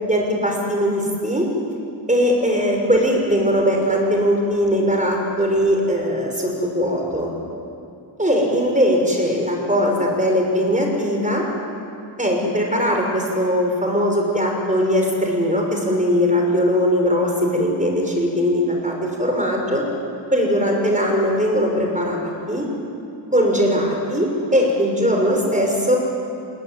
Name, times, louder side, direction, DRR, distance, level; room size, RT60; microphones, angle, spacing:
voice 1, 0.1-1.5 2.1-7.3 8.2-11.5 12.2-19.8 20.3-22.7 23.3-26.0, equal, 15° right, 1 dB, 6.2 m, -20 dB
29.5 x 20.0 x 9.2 m, 2.6 s
wide cardioid pair, 90°, 48 cm